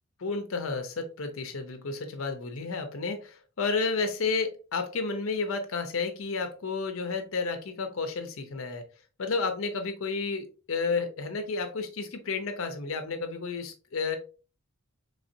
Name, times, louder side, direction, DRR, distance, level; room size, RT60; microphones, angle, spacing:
voice 1, 0.2-8.8 9.2-14.2, left 4 dB, 65° left, 6 dB, 0.6 m, -31 dB
4.0 x 3.3 x 2.6 m, 0.34 s
head